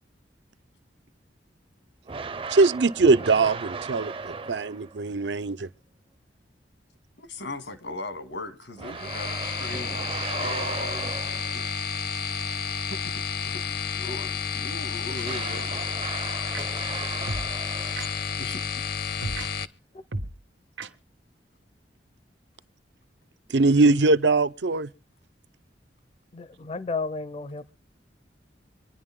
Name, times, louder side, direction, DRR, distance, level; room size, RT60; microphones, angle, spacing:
sound 1, 2.1-5.0 8.8-11.7 15.2-18.3, right 5 dB, 30° right, 0.6 m, -37 dB
voice 1, 2.5-5.7 23.5-24.9, right 3 dB, 70° right, 0.6 m, -21 dB
voice 2, 7.2-11.7 12.9-13.1 13.4-15.7 18.4-18.8, left 2 dB, 85° left, 2.2 m, -38 dB
sound 2, 9.0-19.6, left 6 dB, 60° left, 0.9 m, -31 dB
sound 3, 15.2-15.3 16.5-16.7 17.3-17.5 18.0-18.1 19.2-19.5 20.1-20.3 20.8-20.9, right 2 dB, 90° right, 1.2 m, -32 dB
voice 3, 26.3-27.7, left 4 dB, 35° left, 0.6 m, -32 dB
25.0 x 10.5 x 3.7 m
head